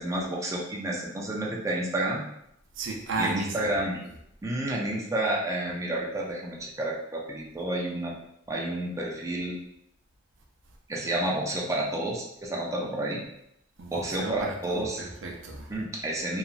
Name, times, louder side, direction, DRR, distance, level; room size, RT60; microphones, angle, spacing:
voice 1, 0.0-2.2 3.2-4.0 4.4-8.1 8.5-9.6 10.9-13.2 13.9-15.0 15.7-16.4, right 1 dB, 15° right, -3 dB, 0.4 m, -30 dB
voice 2, 2.8-3.7 13.8-15.7, right 3 dB, 75° right, 0 dB, 0.5 m, -33 dB
3.0 x 2.4 x 2.5 m, 0.77 s
head